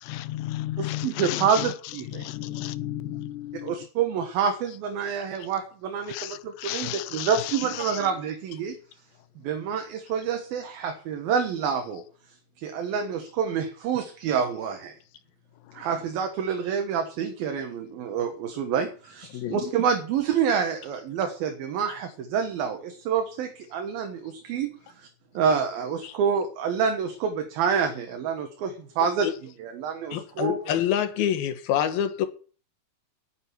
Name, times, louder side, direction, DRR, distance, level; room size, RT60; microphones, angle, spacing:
voice 1, 0.0-3.8 6.1-8.1 15.8-15.9, left 14 dB, 85° left, 2.9 m, -33 dB
voice 2, 0.8-2.3 3.6-8.8 9.4-12.0 12.6-14.9 15.7-24.7 25.0-25.1 25.3-29.3 29.6-30.6, right 7 dB, 70° right, 3.1 m, -27 dB
voice 3, 30.1-32.3, left 10 dB, 70° left, 3.0 m, -26 dB
9.2 x 9.1 x 9.6 m
omnidirectional pair, 4.7 m